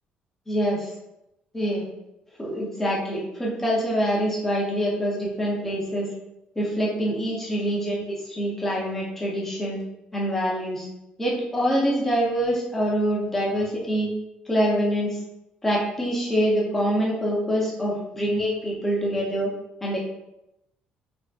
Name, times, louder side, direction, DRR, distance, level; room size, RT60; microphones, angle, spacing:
voice 1, 0.5-0.9 1.5-1.8 2.4-6.1 6.6-9.8 10.1-10.9 11.2-14.1 14.5-15.2 15.6-19.5 19.8-20.0, equal, 10° left, -5 dB, 0.6 m, -25 dB
3.4 x 2.0 x 2.4 m, 0.87 s
cardioid pair, 165°, 3 cm